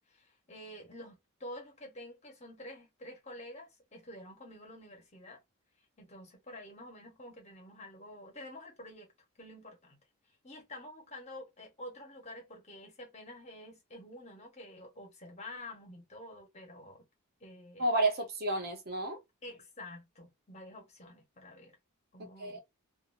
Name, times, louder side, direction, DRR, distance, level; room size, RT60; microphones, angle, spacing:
voice 1, 0.1-5.4 6.0-9.1 9.4-10.0 10.4-17.0 17.4-17.9 19.4-21.8 22.1-22.6, left 1 dB, 30° left, 1.1 m, -49 dB
voice 2, 17.8-19.2 22.2-22.6, right 2 dB, 45° right, 0.8 m, -31 dB
2.6 x 2.6 x 2.6 m
head